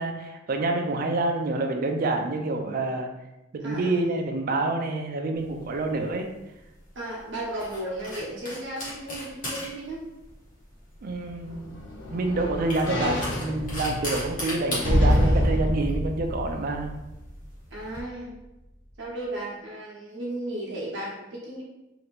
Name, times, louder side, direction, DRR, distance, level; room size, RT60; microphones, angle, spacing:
voice 1, 0.0-3.1 3.5-6.3 11.0-11.7 12.1-16.9, right 2 dB, 50° right, 3 dB, 0.4 m, -27 dB
voice 2, 3.6-4.2 6.9-10.1 17.7-18.4 19.0-21.6, right 1 dB, 65° right, -4 dB, 0.8 m, -35 dB
sound 1, 5.4-18.0, left 1 dB, 45° left, 1.1 m, -39 dB
sound 2, 11.1-17.5 17.9-18.0, equal, 70° left, 0.7 m, -27 dB
2.8 x 2.4 x 3.3 m, 0.98 s
head